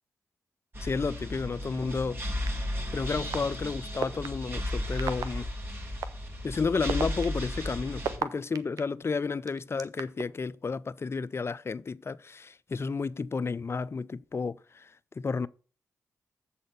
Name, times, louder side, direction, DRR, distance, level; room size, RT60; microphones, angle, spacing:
sound 1, 0.7-8.2, left 1 dB, 35° right, 2.7 m, -34 dB
voice 1, 0.8-2.2 2.9-5.5 6.4-15.5, left 4 dB, 45° left, 0.5 m, -32 dB
sound 2, 2.5-2.6 3.3-3.4 4.0-4.3 5.0-5.2 6.0-6.1 6.7-8.8 9.5-10.2, right 8 dB, 80° right, 0.6 m, -31 dB
7.6 x 4.2 x 6.7 m
supercardioid pair, 50°, 6 cm